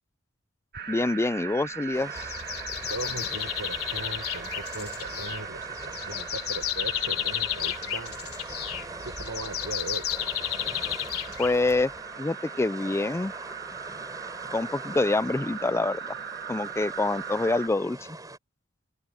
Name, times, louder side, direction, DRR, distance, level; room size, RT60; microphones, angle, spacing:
sound 1, 0.7-17.7, right 7 dB, 50° right, 1.9 m, -40 dB
voice 1, 0.9-2.3 11.4-11.9 12.2-13.3 14.5-16.0 16.5-18.0, left 2 dB, 10° left, 0.3 m, -26 dB
sound 2, 1.9-18.4, right 2 dB, 15° right, 4.8 m, -43 dB
sound 3, 2.2-12.0, left 12 dB, 75° left, 3.3 m, -33 dB
voice 2, 2.9-8.5 9.0-10.1, right 2 dB, 70° right, 4.3 m, -39 dB
open air
head